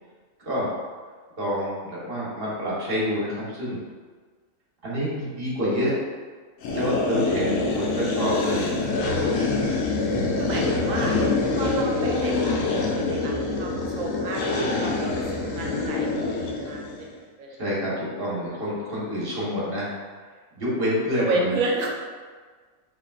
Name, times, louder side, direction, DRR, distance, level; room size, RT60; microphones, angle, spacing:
voice 1, 0.4-0.7 1.4-3.8 4.8-5.9 6.7-8.8 10.1-10.8 17.6-19.9 20.5-21.5, equal, 45° right, -7 dB, 1.4 m, -27 dB
sound 1, 6.6-17.1, left 3 dB, 75° left, 1.0 m, -25 dB
voice 2, 7.0-7.4 10.3-11.2 11.5-15.2 15.5-17.1 17.4-17.6 21.2-21.9, right 2 dB, 90° right, -1 dB, 1.2 m, -31 dB
5.0 x 3.3 x 2.4 m, 1.5 s
omnidirectional pair, 1.4 m